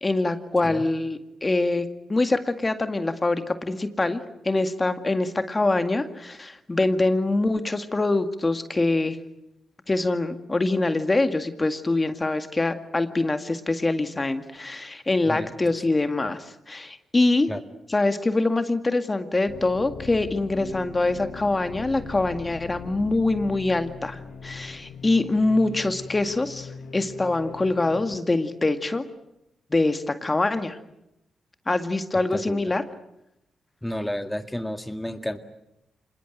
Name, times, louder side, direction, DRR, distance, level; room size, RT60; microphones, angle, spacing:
voice 1, 0.0-9.2 9.9-17.5 17.9-29.0 29.7-30.8 31.7-32.8, left 2 dB, 30° left, 8 dB, 2.0 m, -24 dB
sound 1, 19.5-28.0, left 5 dB, 75° left, 1.6 m, -41 dB
voice 2, 32.3-32.7 33.8-35.4, left 1 dB, 10° left, 7 dB, 1.9 m, -31 dB
26.0 x 20.5 x 9.1 m, 0.87 s
supercardioid pair, 45°, 0 cm